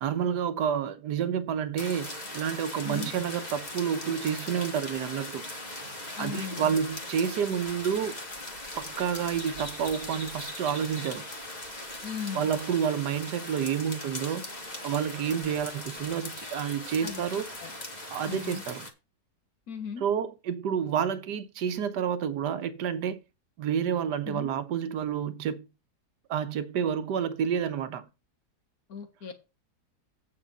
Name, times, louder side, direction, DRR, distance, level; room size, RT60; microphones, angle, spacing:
voice 1, 0.0-5.5 6.2-8.2 8.8-11.3 12.3-14.4 14.8-17.4 18.1-18.8 20.0-23.2 23.6-25.7 26.3-28.1, right 8 dB, 80° right, 1.5 m, -29 dB
sound 1, 1.8-18.9, left 1 dB, 25° left, 1.6 m, -40 dB
voice 2, 6.2-6.8 12.0-12.5 17.0-17.7 18.3-18.6 19.7-20.1 24.3-24.5 28.9-29.3, left 6 dB, 60° left, 2.0 m, -38 dB
8.7 x 5.4 x 5.4 m
omnidirectional pair, 1.8 m